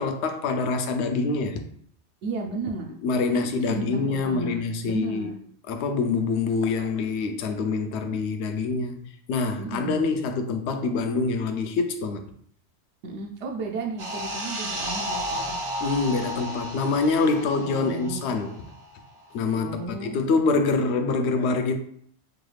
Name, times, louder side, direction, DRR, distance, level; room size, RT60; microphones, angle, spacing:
voice 1, 0.0-1.6 3.0-5.3 5.7-9.0 9.3-12.3 15.8-18.6 19.3-21.8, left 4 dB, 75° left, 0.8 m, -25 dB
voice 2, 2.2-2.9 3.3-5.4 9.6-10.1 13.0-15.6 17.6-18.3 19.5-20.1, right 3 dB, 80° right, 0.9 m, -34 dB
sound 1, 14.0-19.1 19.3-19.5, equal, 40° right, 0.5 m, -33 dB
4.8 x 2.3 x 3.2 m
omnidirectional pair, 1.2 m